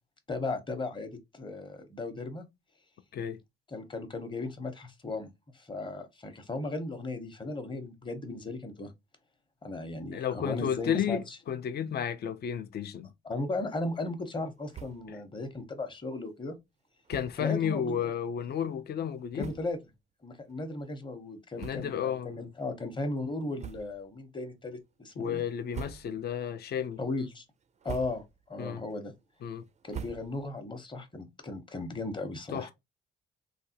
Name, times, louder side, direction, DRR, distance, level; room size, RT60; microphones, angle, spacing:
voice 1, 0.3-2.5 3.7-8.9 9.6-11.4 13.2-16.6 17.4-18.1 19.4-19.8 20.2-25.4 27.0-27.4 27.8-28.2 28.5-29.1 29.8-32.7, left 2 dB, 25° left, 0.9 m, -36 dB
voice 2, 10.1-13.1 15.1-15.2 17.1-19.5 21.6-22.5 25.2-27.0 28.6-28.8 29.4-29.7 32.5-32.7, left 8 dB, 55° left, 0.5 m, -32 dB
sound 1, 14.7-15.2 15.5-15.6 15.9-16.1 17.0-17.5 18.2-18.3 19.0-19.1 19.4-19.9 20.5-20.6 21.5-22.2 22.6-22.7 23.5-24.2 24.6-25.0 25.5-26.4 26.8-27.2 27.6-28.5 28.8-30.7, right 8 dB, 35° right, 0.4 m, -45 dB
3.3 x 2.3 x 2.8 m
cardioid pair, 90°, 20 cm